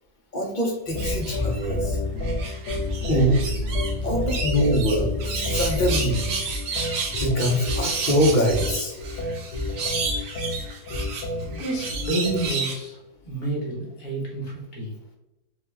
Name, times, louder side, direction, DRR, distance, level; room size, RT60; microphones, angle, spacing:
voice 1, 0.3-2.0 3.1-3.4 4.0-5.1 5.5-6.2 7.2-9.0, equal, 35° left, 0 dB, 0.8 m, -23 dB
sound 1, 0.9-12.5, left 1 dB, 85° left, 1.8 m, -29 dB
sound 2, 1.0-1.7 2.2-3.9 4.3-12.7, right 4 dB, 75° right, 1.5 m, -31 dB
voice 2, 11.5-13.0 13.2-14.9, right 2 dB, 65° left, -4 dB, 1.9 m, -29 dB
5.8 x 2.4 x 3.3 m, 0.99 s
omnidirectional pair, 1.8 m